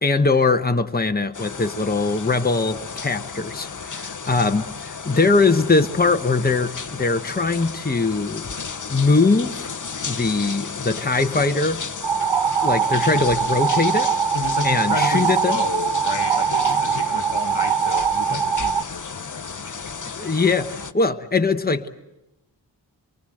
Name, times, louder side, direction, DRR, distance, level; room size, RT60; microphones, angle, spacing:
voice 1, 0.0-8.5 8.9-9.7 10.1-11.8 12.6-14.1 14.6-15.6 18.3-18.4 20.0-21.9, left 3 dB, 20° left, 1.1 m, -21 dB
sound 1, 1.3-20.9, left 5 dB, 45° left, 1.0 m, -33 dB
sound 2, 12.0-18.8, right 7 dB, 85° right, 0.8 m, -22 dB
voice 2, 14.3-19.9, left 5 dB, 75° left, 1.6 m, -31 dB
25.0 x 23.5 x 7.9 m
cardioid pair, 45°, 44 cm